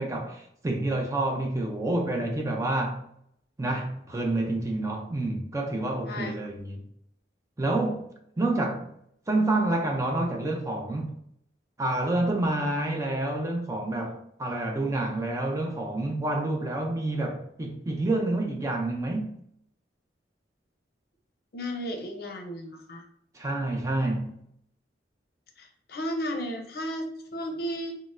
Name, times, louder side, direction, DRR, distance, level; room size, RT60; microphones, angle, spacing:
voice 1, 0.0-3.0 3.6-6.8 7.6-8.0 8.4-8.9 9.3-11.1 11.8-19.3 23.3-24.4, right 2 dB, 15° right, 0.4 m, -28 dB
voice 2, 21.5-23.0 25.6-27.9, equal, 55° left, 0.6 m, -34 dB
4.1 x 2.0 x 2.4 m
head